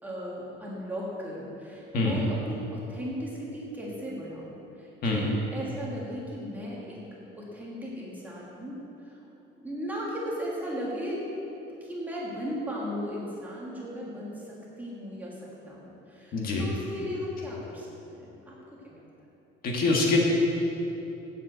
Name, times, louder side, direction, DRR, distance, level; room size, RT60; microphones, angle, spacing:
voice 1, 0.0-7.0 7.4-9.2 9.6-11.2 11.8-18.9, equal, 10° right, -5 dB, 1.6 m, -36 dB
voice 2, 16.3-16.6 19.6-20.2, left 3 dB, 50° left, -1 dB, 1.6 m, -25 dB
7.6 x 7.4 x 7.7 m, 3.0 s
cardioid pair, 175°, 20 cm